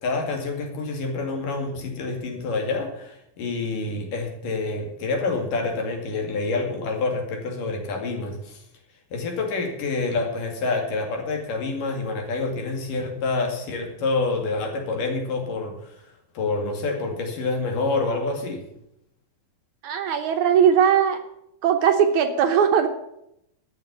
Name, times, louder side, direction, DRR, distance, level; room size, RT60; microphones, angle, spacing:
voice 1, 0.0-8.6 9.1-16.1 16.3-18.7, left 3 dB, 70° left, 2 dB, 3.9 m, -27 dB
voice 2, 19.8-21.2 21.6-22.9, right 8 dB, 70° right, 6 dB, 2.1 m, -19 dB
13.0 x 6.7 x 9.5 m, 0.80 s
omnidirectional pair, 4.0 m